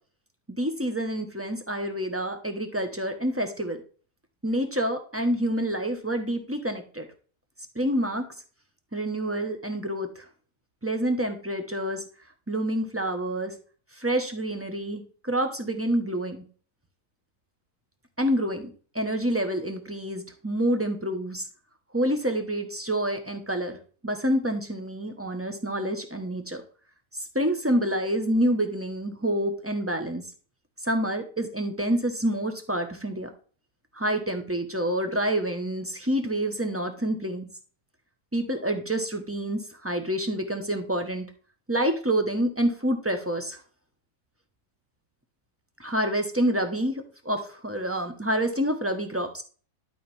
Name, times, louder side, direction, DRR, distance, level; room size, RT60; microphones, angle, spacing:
voice 1, 0.5-3.8 4.4-7.1 7.7-8.2 8.9-10.2 10.8-12.1 12.5-13.6 13.9-16.4 18.2-21.5 21.9-23.8 24.0-26.6 27.2-30.2 30.8-33.3 33.9-37.5 38.3-41.3 41.7-43.6 45.8-49.4, right 1 dB, 10° right, 5 dB, 0.8 m, -27 dB
12.0 x 5.1 x 3.4 m, 0.40 s
omnidirectional pair, 1.9 m